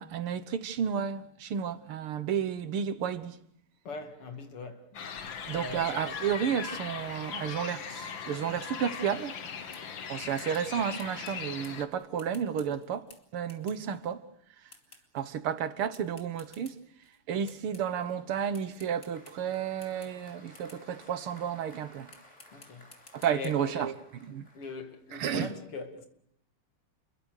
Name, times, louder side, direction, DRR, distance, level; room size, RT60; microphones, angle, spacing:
voice 1, 0.0-3.4 5.4-9.4 10.1-14.3 15.1-16.8 17.3-22.1 23.1-24.0 24.3-24.5 25.1-25.5, right 8 dB, 80° right, 2.1 m, -32 dB
voice 2, 3.8-6.1 22.5-22.9 23.3-23.9 24.5-26.1, left 4 dB, 90° left, 3.3 m, -41 dB
sound 1, 4.9-11.9, left 6 dB, 65° left, 2.2 m, -39 dB
sound 2, 9.7-10.0 10.4-14.1 14.7-15.3 15.9-17.2 17.5-18.1 18.5-20.9 21.6-21.7 22.1-23.5, left 3 dB, 35° left, 3.1 m, -57 dB
Applause, 18.1-25.2, left 1 dB, 20° left, 5.2 m, -57 dB
29.0 x 22.5 x 6.5 m
omnidirectional pair, 2.4 m